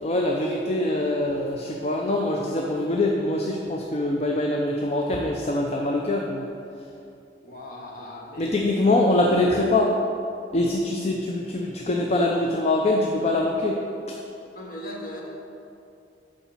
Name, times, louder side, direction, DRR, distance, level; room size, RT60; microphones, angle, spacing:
voice 1, 0.0-6.5 8.4-9.9 10.5-13.8, left 2 dB, 35° left, 0 dB, 0.5 m, -23 dB
voice 2, 7.4-8.5 14.5-15.2, left 1 dB, 50° left, -3 dB, 1.6 m, -38 dB
7.0 x 5.1 x 7.2 m, 2.7 s
head